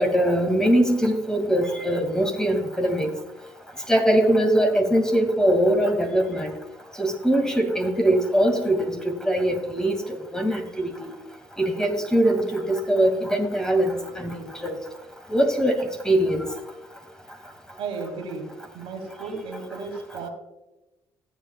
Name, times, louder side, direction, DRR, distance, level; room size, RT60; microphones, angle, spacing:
voice 1, 0.0-3.1 3.9-6.5 7.0-11.1 11.6-14.7 15.3-16.4, right 1 dB, 5° left, 3 dB, 2.2 m, -22 dB
voice 2, 17.8-20.3, right 4 dB, 75° right, 3 dB, 2.3 m, -34 dB
15.0 x 7.9 x 2.3 m, 1.0 s
supercardioid pair, 65°, 10 cm